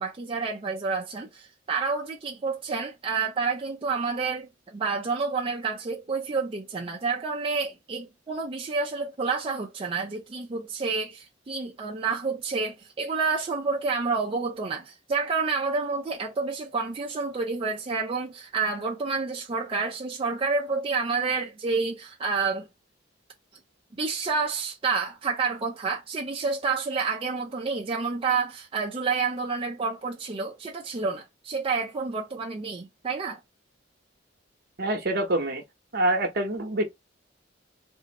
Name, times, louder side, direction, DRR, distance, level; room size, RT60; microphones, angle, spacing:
voice 1, 0.0-22.7 24.0-33.4, right 4 dB, 30° right, 0.5 m, -29 dB
voice 2, 34.8-35.6 35.9-36.8, right 1 dB, 55° right, 0.9 m, -25 dB
2.7 x 2.6 x 4.0 m
head